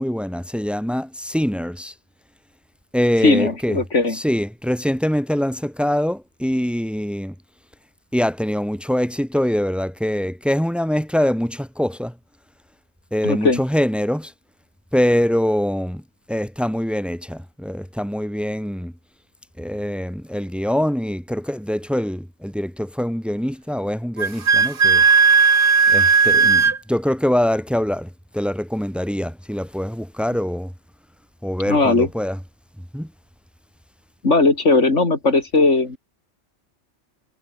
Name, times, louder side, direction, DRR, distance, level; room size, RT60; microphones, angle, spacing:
voice 1, 0.0-1.9 2.9-3.8 4.1-7.3 8.1-12.1 13.1-14.3 14.9-16.0 16.3-18.9 19.6-25.0 25.9-30.7 31.4-32.4 32.9-33.1, equal, ahead, 5.2 m, -23 dB
voice 2, 3.2-4.2 13.2-13.6 31.7-32.1 34.2-36.0, left 3 dB, 65° left, 3.8 m, -17 dB
Wind instrument woodwind instrument, 24.2-26.8, right 5 dB, 45° right, 1.5 m, -15 dB
omnidirectional pair, 1.3 m